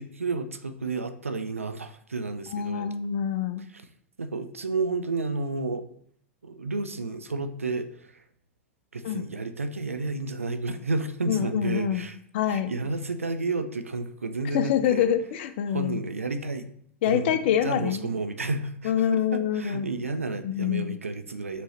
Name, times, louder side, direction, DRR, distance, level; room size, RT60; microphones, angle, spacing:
voice 1, 0.0-2.9 3.7-3.8 4.2-5.9 6.4-8.2 8.9-12.2 12.5-15.1 15.7-16.7 17.0-21.6, right 3 dB, 90° right, 10 dB, 0.4 m, -31 dB
voice 2, 2.5-3.6 9.0-9.2 11.3-12.1 12.3-12.7 14.5-16.0 17.0-18.1 18.8-19.9 20.4-21.0, left 9 dB, 55° left, 11 dB, 0.5 m, -26 dB
5.6 x 3.0 x 2.9 m, 0.64 s
figure-of-eight pair, 95°, 7 cm